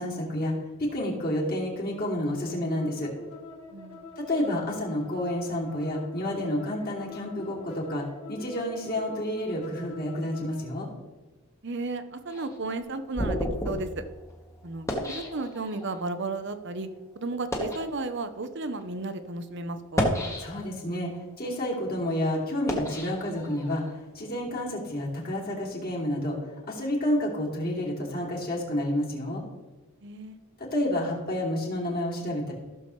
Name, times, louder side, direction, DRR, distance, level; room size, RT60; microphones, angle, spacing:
voice 1, 0.0-3.1 4.2-10.9 20.4-21.1 21.4-23.8 24.1-26.4 26.7-29.4 30.7-32.5, left 1 dB, 45° left, -3 dB, 2.8 m, -30 dB
sound 1, 2.5-10.7, left 3 dB, 85° left, 1.8 m, -45 dB
voice 2, 3.7-4.0 11.6-14.0 14.6-16.9 17.2-20.1 30.0-30.4, right 3 dB, 55° right, 10 dB, 0.8 m, -34 dB
sound 2, 12.3-16.0 16.7-16.8 17.3-17.9 18.7-18.8 19.8-20.9 21.4-23.9, left 1 dB, 15° left, 1.4 m, -32 dB
15.5 x 6.9 x 3.2 m, 1.3 s
head